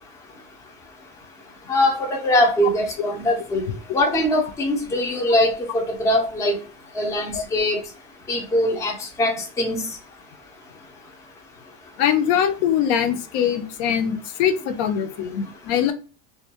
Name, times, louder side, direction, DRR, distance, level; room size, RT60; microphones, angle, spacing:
voice 1, 1.7-3.7 3.9-6.5 7.0-7.8 8.3-9.8, left 1 dB, 10° left, 0 dB, 0.4 m, -22 dB
voice 2, 12.0-15.9, left 9 dB, 65° left, 8 dB, 0.5 m, -22 dB
2.2 x 2.0 x 2.8 m, 0.35 s
supercardioid pair, 135°, 35 cm